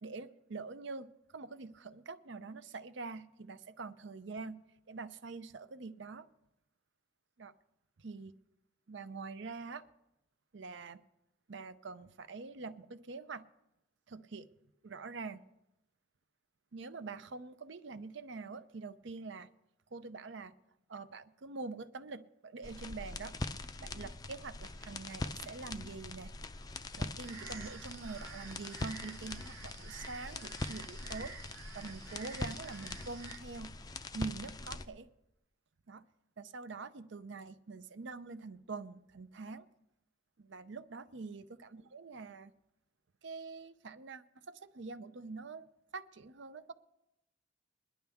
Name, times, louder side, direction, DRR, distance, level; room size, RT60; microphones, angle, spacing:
voice 1, 0.0-6.3 7.4-7.5 8.0-8.3 8.9-9.8 10.5-11.0 11.5-13.5 14.1-14.5 14.8-15.4 16.7-19.5 19.9-20.5 20.9-23.4 23.8-26.3 27.0-31.3 31.7-33.7 34.1-35.1 35.9-36.0 36.4-39.7 40.4-42.5 43.2-45.7 45.9-46.7, right 4 dB, 60° right, 13 dB, 0.6 m, -45 dB
sound 1, 22.6-34.9, left 2 dB, 20° left, 0.4 m, -43 dB
sound 2, 27.2-33.4, right 5 dB, 80° right, 1.4 m, -51 dB
21.5 x 11.0 x 3.5 m, 0.90 s
head